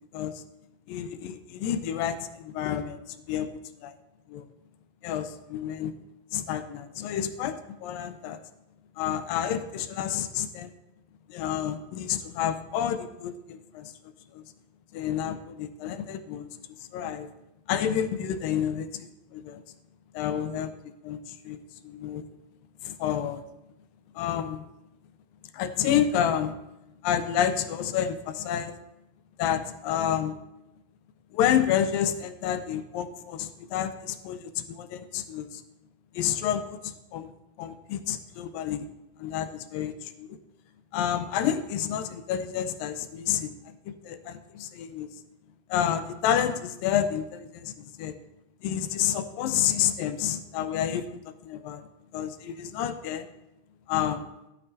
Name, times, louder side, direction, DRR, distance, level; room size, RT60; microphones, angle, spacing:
voice 1, 0.9-3.9 4.3-4.5 5.0-5.9 6.3-8.4 9.0-10.7 11.3-13.9 14.3-14.4 14.9-17.3 17.7-19.6 20.1-22.2 22.8-23.4 24.2-24.6 25.5-26.7 27.0-28.8 29.4-30.4 31.3-35.6 36.1-37.3 37.6-38.9 39.2-40.3 40.9-45.1 45.7-48.1 48.6-53.3 53.9-54.3, left 9 dB, 80° left, 10 dB, 2.2 m, -29 dB
12.5 x 12.0 x 2.7 m, 0.92 s
omnidirectional pair, 4.2 m